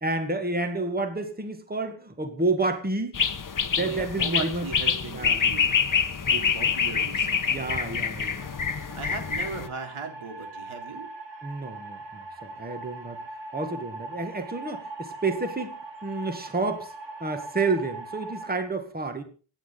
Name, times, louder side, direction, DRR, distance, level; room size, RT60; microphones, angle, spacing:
voice 1, 0.0-3.2 3.7-4.7 5.1-5.4 6.2-6.4 7.5-8.5 11.4-13.2 13.5-16.9 17.2-19.2, right 3 dB, 20° right, 6 dB, 2.1 m, -30 dB
sound 1, 3.1-9.7, left 6 dB, 40° left, 1.3 m, -26 dB
voice 2, 3.8-5.7 6.3-7.6 8.9-11.1, right 4 dB, 90° right, 4 dB, 3.8 m, -37 dB
sound 2, 8.4-18.6, right 2 dB, 65° right, 3.1 m, -41 dB
25.0 x 10.0 x 4.0 m, 0.36 s
wide cardioid pair, 145°, 48 cm